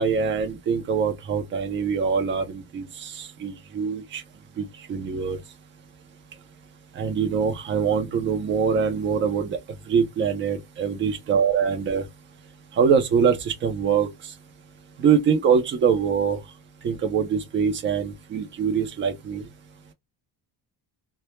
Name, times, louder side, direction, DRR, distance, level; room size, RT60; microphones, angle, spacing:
voice 1, 0.0-4.2 4.6-5.4 7.0-9.6 9.9-12.0 12.8-14.1 15.0-16.4 16.8-19.5, right 6 dB, 30° right, 0.4 m, -23 dB
2.0 x 2.0 x 2.9 m
cardioid pair, 180°, 41 cm